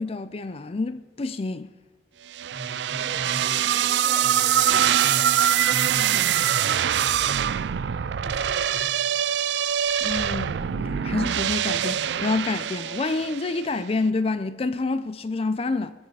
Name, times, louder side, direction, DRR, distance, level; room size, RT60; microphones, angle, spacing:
voice 1, 0.0-1.7 10.0-15.9, left 3 dB, 35° left, 0.4 m, -28 dB
sound 1, 2.3-13.6, right 10 dB, 85° right, 0.4 m, -24 dB
voice 2, 2.5-7.9 8.2-9.0, equal, 35° right, 5.6 m, -40 dB
22.0 x 7.9 x 4.8 m
head